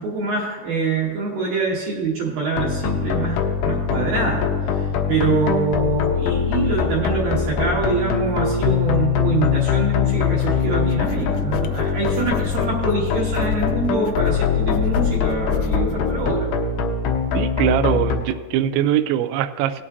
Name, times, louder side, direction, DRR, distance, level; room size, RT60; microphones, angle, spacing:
voice 1, 0.0-4.5 4.7-16.5, right 4 dB, 65° right, -4 dB, 2.4 m, -25 dB
sound 1, 2.6-18.2, left 7 dB, 75° left, 2.7 m, -22 dB
sound 2, 10.1-16.2, left 6 dB, 90° left, 3.1 m, -32 dB
voice 2, 17.3-19.8, right 11 dB, 85° right, 11 dB, 2.7 m, -22 dB
17.5 x 8.5 x 2.7 m, 1.4 s
omnidirectional pair, 5.5 m